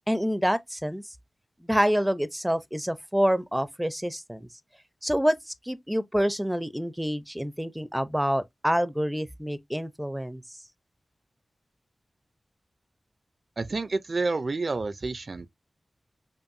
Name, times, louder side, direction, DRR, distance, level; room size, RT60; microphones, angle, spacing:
voice 1, 0.1-1.0 1.6-4.5 5.0-10.4, equal, 5° right, 0.5 m, -27 dB
voice 2, 13.6-15.5, right 3 dB, 55° right, 0.4 m, -29 dB
5.4 x 2.5 x 2.5 m
wide cardioid pair, 65°, 0 cm